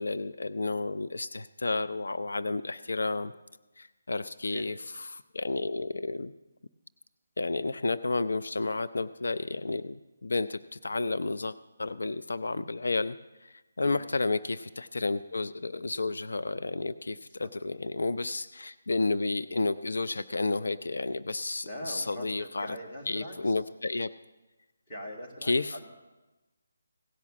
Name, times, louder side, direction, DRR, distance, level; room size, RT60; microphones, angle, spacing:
voice 1, 0.0-3.3 3.8-6.3 7.4-13.2 13.4-22.8 23.1-24.1 25.4-25.8, left 3 dB, 85° left, 12 dB, 0.4 m, -31 dB
voice 2, 21.6-23.5 24.9-25.8, equal, 20° left, 0 dB, 1.9 m, -42 dB
16.5 x 5.8 x 7.2 m, 1.1 s
hypercardioid pair, 175°, 0 cm